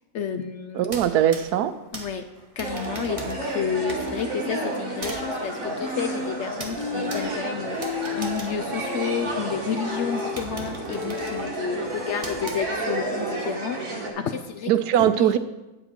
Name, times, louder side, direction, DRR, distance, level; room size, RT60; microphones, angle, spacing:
voice 1, 0.1-0.9 1.9-2.3 2.6-15.4, left 7 dB, 65° left, 8 dB, 0.7 m, -31 dB
sound 1, 0.8-9.5 9.9-10.0 10.4-13.1, right 3 dB, 25° right, 1.1 m, -42 dB
voice 2, 0.8-1.7 14.7-15.4, right 11 dB, 85° right, 12 dB, 1.2 m, -20 dB
sound 2, 2.6-14.1, right 2 dB, 60° right, 2.3 m, -31 dB
sound 3, 5.8-6.3 6.7-7.3 7.6-8.3 8.7-13.3, left 6 dB, 85° left, 2.1 m, -34 dB
9.4 x 7.9 x 4.4 m, 1.1 s
omnidirectional pair, 1.6 m